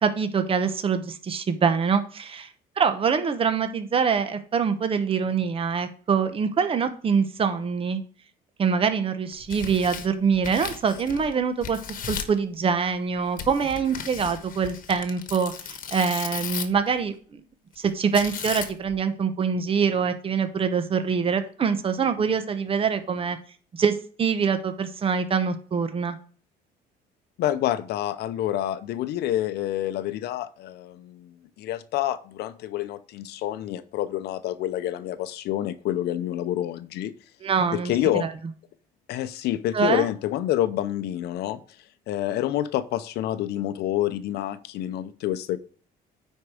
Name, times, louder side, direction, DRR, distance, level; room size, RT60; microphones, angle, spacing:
voice 1, 0.0-2.5 2.8-8.0 8.6-11.8 12.1-17.4 17.8-23.4 23.7-26.2 37.4-37.9 38.2-38.3 39.7-40.1, right 6 dB, 35° right, 9 dB, 0.9 m, -24 dB
Tearing, 9.3-11.3 11.6-12.4 13.4-16.9 18.1-18.9, left 7 dB, 55° left, 1.2 m, -35 dB
voice 2, 27.4-37.1 37.7-38.3 39.1-41.6 42.1-45.6, left 12 dB, 75° left, 13 dB, 0.7 m, -28 dB
9.5 x 4.6 x 4.9 m, 0.43 s
cardioid pair, 110°, 17 cm